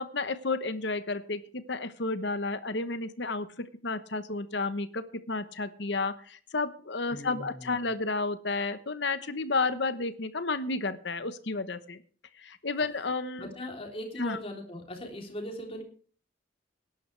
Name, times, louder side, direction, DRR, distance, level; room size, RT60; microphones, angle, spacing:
voice 1, 0.0-12.0 12.4-13.5 14.2-14.4, left 3 dB, 65° left, 12 dB, 1.1 m, -32 dB
voice 2, 7.1-7.8 13.4-15.8, equal, 30° left, 2 dB, 3.3 m, -40 dB
20.5 x 11.0 x 3.3 m, 0.44 s
head